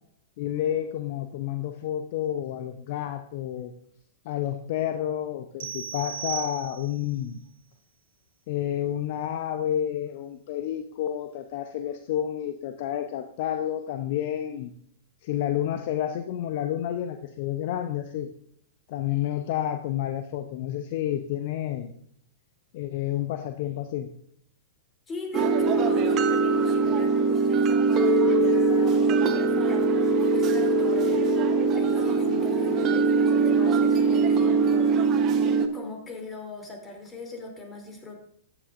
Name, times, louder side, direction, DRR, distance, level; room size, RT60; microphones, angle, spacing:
voice 1, 0.4-3.8 4.2-7.4 8.5-14.7 15.2-18.3 18.9-21.9 22.7-24.1, left 11 dB, 55° left, 8 dB, 0.7 m, -30 dB
sound 1, 5.6-7.1, right 8 dB, 65° right, 0.9 m, -36 dB
voice 2, 25.1-35.3 35.7-38.2, left 2 dB, 20° left, 2 dB, 3.0 m, -41 dB
sound 2, 25.3-35.7, right 4 dB, 35° right, 1.0 m, -22 dB
13.5 x 9.7 x 2.5 m, 0.66 s
hypercardioid pair, 105°, 0 cm